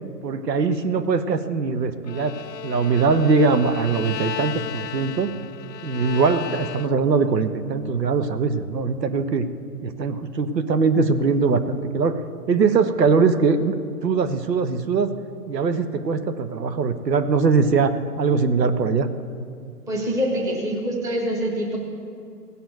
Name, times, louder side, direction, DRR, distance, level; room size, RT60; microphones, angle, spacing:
voice 1, 0.2-2.4 2.6-5.3 5.8-9.5 9.8-12.2 12.5-13.8 14.0-15.1 15.5-19.1, right 4 dB, 85° right, 10 dB, 1.2 m, -21 dB
Bowed string instrument, 2.0-7.2, left 9 dB, 85° left, 0.6 m, -34 dB
voice 2, 19.9-21.8, equal, 5° right, 0 dB, 1.0 m, -25 dB
16.5 x 7.1 x 9.3 m, 2.3 s
hypercardioid pair, 155°, 48 cm